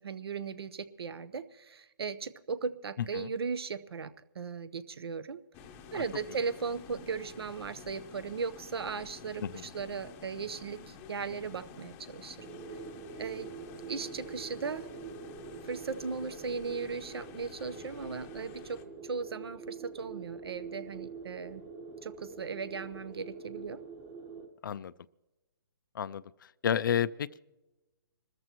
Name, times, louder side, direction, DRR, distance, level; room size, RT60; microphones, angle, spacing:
voice 1, 0.0-5.4 5.9-12.5 13.2-13.5 13.9-14.9 15.6-21.6 22.0-23.8, right 5 dB, 75° right, 15 dB, 0.9 m, -37 dB
sound 1, 5.5-18.8, left 6 dB, 15° left, 0.8 m, -50 dB
sound 2, 12.4-24.5, right 4 dB, 20° right, 1.2 m, -45 dB
voice 2, 24.6-24.9 25.9-27.4, left 8 dB, 55° left, 18 dB, 0.4 m, -32 dB
26.5 x 14.0 x 3.0 m, 1.1 s
hypercardioid pair, 160°, 13 cm